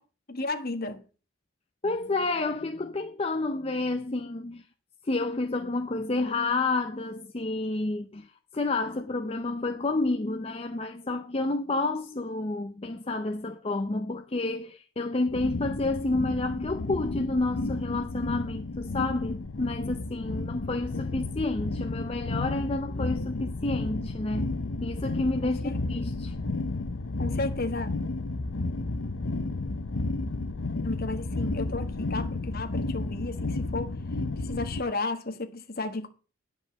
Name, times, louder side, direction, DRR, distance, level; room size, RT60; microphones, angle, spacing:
voice 1, 0.3-1.0 25.4-26.1 27.2-27.9 30.8-33.9 34.4-36.1, left 2 dB, 50° left, 1.4 m, -33 dB
voice 2, 1.8-4.6 5.1-8.3 8.5-24.5 24.8-26.3, left 2 dB, 30° left, 0.7 m, -30 dB
sound 1, 15.3-34.8, left 2 dB, 75° left, 0.8 m, -32 dB
10.5 x 5.1 x 7.3 m
head